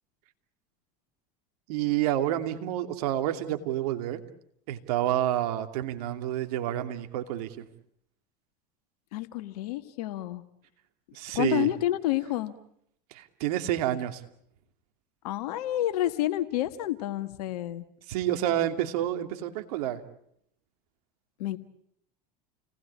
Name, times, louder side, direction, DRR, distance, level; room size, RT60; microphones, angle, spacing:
voice 1, 1.7-4.2 4.7-7.7 11.1-11.7 13.1-14.2 18.1-20.0, right 12 dB, 70° right, 7 dB, 2.7 m, -29 dB
voice 2, 9.1-10.4 11.3-12.5 15.2-17.8 21.4-21.6, left 14 dB, 70° left, 10 dB, 1.6 m, -29 dB
29.5 x 19.5 x 8.6 m, 0.72 s
hypercardioid pair, 90°, 20 cm